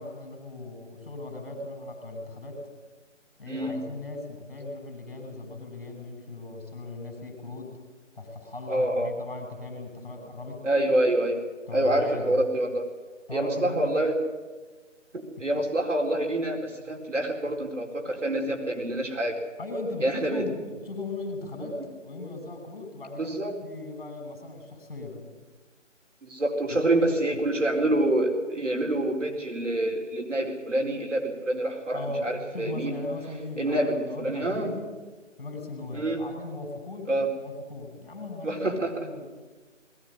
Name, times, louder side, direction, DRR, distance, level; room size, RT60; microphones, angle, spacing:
voice 1, 0.0-2.6 3.4-7.8 8.1-10.7 11.7-12.4 13.3-13.9 15.1-15.4 19.6-25.2 26.7-27.0 27.3-27.4 31.9-34.9 35.4-37.1 37.4-39.3, left 2 dB, 40° left, 5 dB, 6.1 m, -38 dB
voice 2, 3.5-3.8 8.7-9.1 10.6-11.4 11.7-12.9 13.3-14.1 15.1-19.4 20.0-20.5 23.2-23.5 26.2-32.9 33.6-34.7 35.9-36.2 37.1-37.3 38.4-39.1, right 1 dB, 70° right, 2 dB, 4.6 m, -26 dB
20.5 x 17.5 x 10.0 m, 1.3 s
figure-of-eight pair, 170°, 38 cm